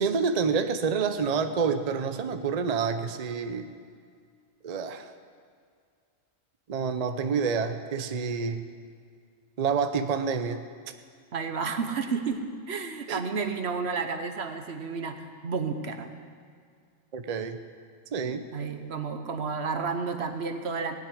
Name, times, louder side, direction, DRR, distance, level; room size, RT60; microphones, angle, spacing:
voice 1, 0.0-3.7 4.6-5.1 6.7-8.6 9.6-10.6 13.1-13.2 17.1-17.6 18.1-18.4, right 5 dB, 40° right, 8 dB, 0.7 m, -28 dB
voice 2, 11.3-12.4 12.7-16.1 18.5-21.0, right 5 dB, 70° right, 7 dB, 1.3 m, -31 dB
18.0 x 6.5 x 9.9 m, 2.1 s
omnidirectional pair, 1.1 m